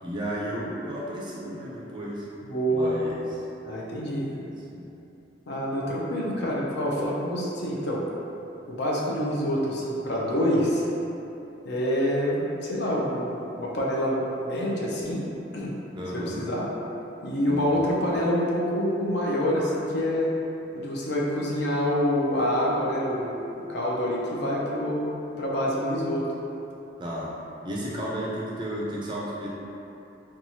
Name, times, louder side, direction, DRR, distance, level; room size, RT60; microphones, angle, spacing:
voice 1, 0.0-2.3 2.7-3.2 4.3-4.9 15.9-16.4 17.4-17.9 27.0-27.3 27.6-29.5, equal, 25° right, -5 dB, 0.4 m, -33 dB
voice 2, 2.4-2.9 3.6-4.3 5.5-8.0 8.7-10.9 11.6-15.2 15.5-15.7 16.1-16.7 17.2-20.3 20.7-23.3 23.7-25.0 25.4-26.2, equal, 65° left, -4 dB, 0.5 m, -26 dB
2.8 x 2.3 x 2.7 m, 2.9 s
head